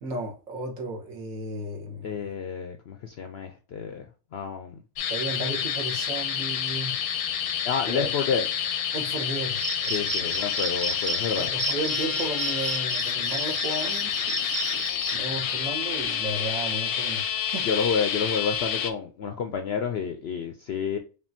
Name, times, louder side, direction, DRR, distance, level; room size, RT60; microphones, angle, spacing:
voice 1, 0.0-2.2 5.1-6.9 7.9-8.1 8.9-10.4 11.4-14.1 15.1-17.7, right 1 dB, 70° right, 1.5 m, -34 dB
voice 2, 2.0-4.1 4.3-4.8 7.6-8.4 9.9-11.5 17.6-21.0, left 6 dB, 65° left, 0.6 m, -29 dB
sound 1, 5.0-18.9, left 8 dB, 80° left, 1.1 m, -29 dB
Cricket, 9.5-15.2, right 3 dB, 90° right, 2.2 m, -33 dB
5.3 x 2.6 x 2.7 m
omnidirectional pair, 1.5 m